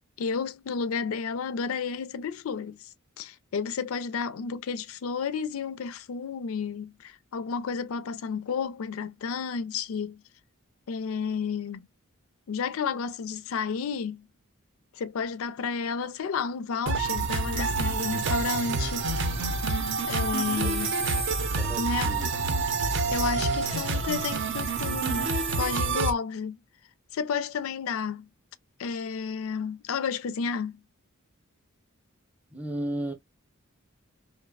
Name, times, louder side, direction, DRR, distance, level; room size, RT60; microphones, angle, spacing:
voice 1, 0.2-2.9 3.2-10.2 10.9-11.8 12.5-14.3 14.9-19.1 19.7-19.8 20.1-20.9 21.8-22.1 23.1-25.3 25.6-26.6 27.1-28.3 28.8-30.8, left 6 dB, 70° left, 0.4 m, -31 dB
sound 1, 16.9-26.1, right 3 dB, 60° right, 0.6 m, -27 dB
voice 2, 21.6-22.3 32.5-33.1, right 1 dB, 5° right, 0.6 m, -33 dB
2.9 x 2.1 x 2.2 m
head